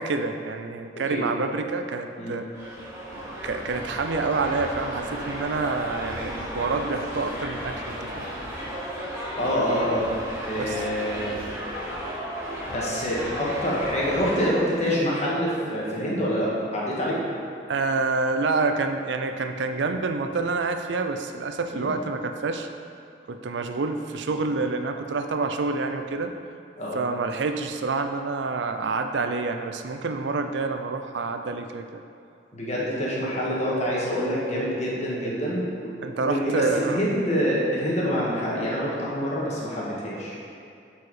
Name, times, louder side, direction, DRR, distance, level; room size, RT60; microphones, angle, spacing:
voice 1, 0.0-2.5 3.2-8.3 10.6-10.8 17.7-22.7 23.3-26.3 26.9-32.0 36.0-37.0, right 3 dB, 65° right, 6 dB, 0.5 m, -27 dB
sound 1, 2.5-14.5, equal, 15° right, 1.7 m, -34 dB
voice 2, 9.4-10.1 10.4-11.3 12.7-17.2 21.7-21.9 26.8-27.0 32.5-40.4, equal, 40° left, -5 dB, 1.7 m, -26 dB
8.1 x 4.7 x 4.8 m, 2.5 s
head